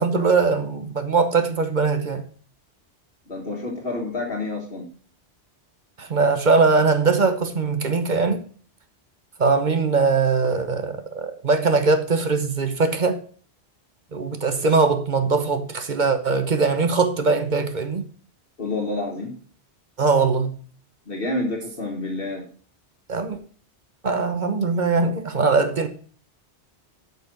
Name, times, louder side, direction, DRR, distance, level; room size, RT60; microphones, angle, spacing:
voice 1, 0.0-2.2 6.0-8.4 9.4-13.2 14.1-18.1 20.0-20.6 23.1-23.4 24.0-25.9, right 4 dB, 45° right, 1.1 m, -21 dB
voice 2, 3.3-4.9 18.6-19.3 21.1-22.5, left 2 dB, 55° left, 1.7 m, -28 dB
8.2 x 5.8 x 5.9 m
omnidirectional pair, 1.2 m